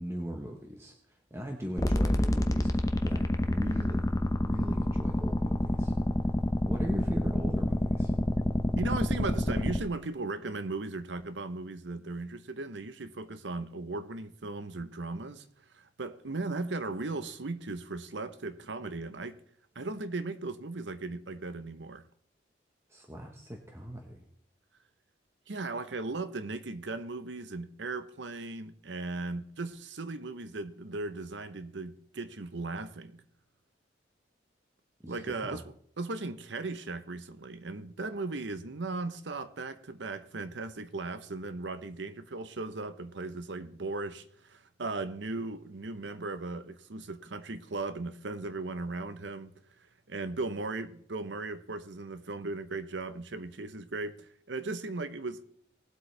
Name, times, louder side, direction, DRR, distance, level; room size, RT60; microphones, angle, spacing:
voice 1, 0.0-2.7 3.0-4.1 4.4-5.9 6.6-8.1 22.9-24.3 35.0-35.6, equal, 15° right, 1.1 m, -39 dB
sound 1, 1.8-9.8, left 1 dB, 20° left, 0.7 m, -28 dB
voice 2, 8.8-15.5 15.7-19.4 19.7-22.0 25.5-33.2 35.1-49.5 50.1-55.4, right 3 dB, 80° right, 0.8 m, -37 dB
19.5 x 8.0 x 3.3 m
head